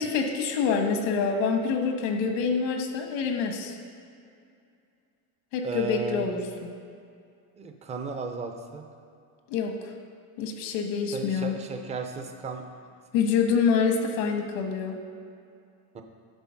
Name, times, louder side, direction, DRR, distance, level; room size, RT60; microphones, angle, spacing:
voice 1, 0.0-3.8 5.5-6.4 9.5-9.9 10.4-11.6 13.1-15.0, left 5 dB, 90° left, 4 dB, 1.3 m, -26 dB
voice 2, 5.6-6.2 7.6-8.8 11.1-12.6 15.9-16.0, right 4 dB, 15° right, 5 dB, 0.4 m, -34 dB
11.0 x 4.1 x 5.7 m, 2.5 s
cardioid pair, 155°, 46 cm